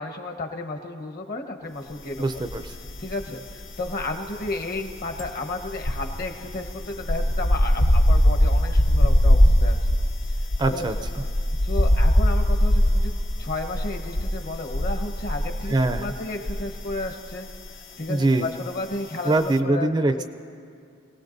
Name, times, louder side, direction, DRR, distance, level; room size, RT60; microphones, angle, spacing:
voice 1, 0.0-2.5 3.0-10.0 10.7-10.8 11.6-17.5 18.0-19.9 20.2-20.3, left 2 dB, 50° left, 4 dB, 1.2 m, -33 dB
voice 2, 2.2-2.7 10.6-11.2 15.7-16.1 18.1-18.5 19.3-20.2, right 2 dB, 20° right, 8 dB, 0.4 m, -23 dB
sound 1, 2.4-3.2 3.5-17.0 17.3-17.6, equal, 65° left, 0.8 m, -21 dB
27.0 x 18.0 x 2.7 m, 2.4 s
head